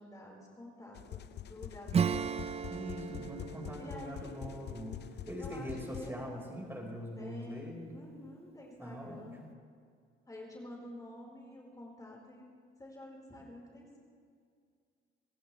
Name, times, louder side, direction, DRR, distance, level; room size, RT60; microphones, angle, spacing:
voice 1, 0.0-2.4 3.8-4.6 5.4-6.4 7.2-9.4 10.3-12.5 12.8-14.0, left 1 dB, 20° left, -2 dB, 4.8 m, -49 dB
sound 1, 0.9-6.1, left 11 dB, 60° left, 0.6 m, -46 dB
Acoustic guitar / Strum, 1.9-6.2, right 7 dB, 30° right, 0.4 m, -36 dB
voice 2, 2.7-5.0 5.3-8.0 8.8-9.3, equal, 10° right, 0 dB, 5.1 m, -42 dB
28.0 x 15.5 x 3.4 m, 2.2 s
cardioid pair, 90°, 20 cm